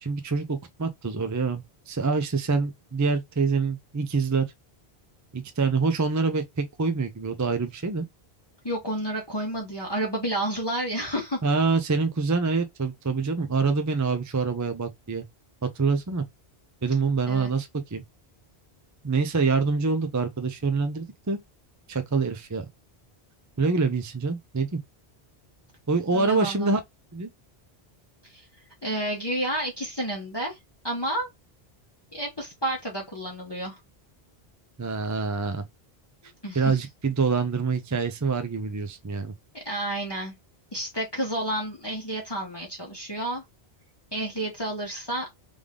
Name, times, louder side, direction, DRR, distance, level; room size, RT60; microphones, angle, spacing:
voice 1, 0.0-4.4 5.3-8.1 11.4-15.2 15.7-16.2 16.8-18.0 19.0-21.4 21.9-22.6 23.6-24.8 25.9-26.8 27.1-27.3 34.8-35.6 36.5-39.3, right 4 dB, 25° right, 0.5 m, -26 dB
voice 2, 8.6-11.4 17.3-17.5 26.1-26.7 28.2-28.5 28.8-30.6 30.8-31.3 32.1-33.8 36.4-36.8 39.5-40.3 40.7-43.4 44.1-45.3, right 1 dB, 25° left, 1.2 m, -30 dB
3.6 x 3.4 x 3.7 m
omnidirectional pair, 1.1 m